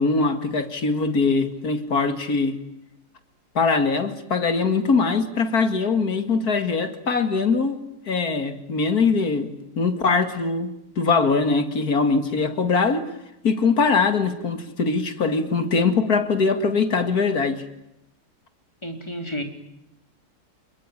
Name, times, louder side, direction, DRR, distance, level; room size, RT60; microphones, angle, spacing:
voice 1, 0.0-2.6 3.5-7.8 8.1-13.1 13.4-17.6, left 4 dB, 70° left, 9 dB, 2.7 m, -22 dB
voice 2, 18.8-19.4, equal, 15° left, 5 dB, 3.7 m, -31 dB
27.5 x 21.5 x 9.9 m, 0.86 s
omnidirectional pair, 1.7 m